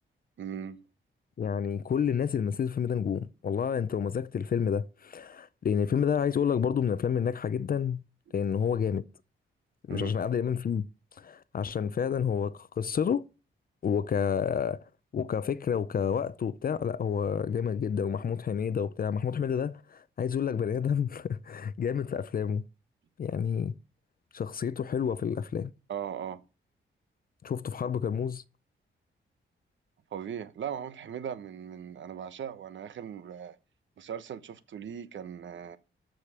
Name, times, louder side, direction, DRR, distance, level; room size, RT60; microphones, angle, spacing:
voice 1, 0.4-0.8 9.9-10.1 25.9-26.4 30.1-33.6 34.0-35.8, right 8 dB, 70° right, 1.1 m, -38 dB
voice 2, 1.4-8.0 8.3-9.0 9.9-10.9 11.1-13.2 13.8-14.8 15.1-22.6 23.2-23.7 24.3-25.7 27.4-28.4, left 7 dB, 45° left, 0.6 m, -29 dB
13.5 x 5.1 x 7.4 m
wide cardioid pair, 140°, 20 cm